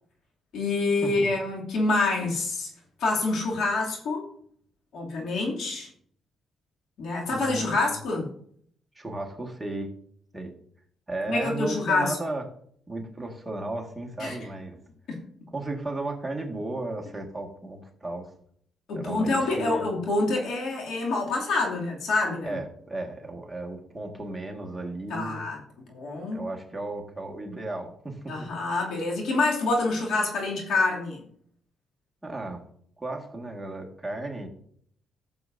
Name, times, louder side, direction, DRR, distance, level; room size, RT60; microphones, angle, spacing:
voice 1, 0.5-2.7 3.0-4.3 4.9-5.9 7.0-8.3 11.3-12.2 14.2-14.4 15.1-15.2 18.9-22.6 25.1-25.6 25.9-26.5 28.3-31.2, left 3 dB, 70° left, -1 dB, 2.6 m, -26 dB
voice 2, 7.2-7.8 9.0-9.9 10.3-10.5 11.1-12.4 12.9-14.8 15.5-18.3 18.9-19.9 22.4-25.5 26.3-28.5 32.2-32.6 33.0-34.5, right 2 dB, 10° right, 0 dB, 1.8 m, -34 dB
13.5 x 7.1 x 2.7 m, 0.63 s
cardioid pair, 90°, 0 cm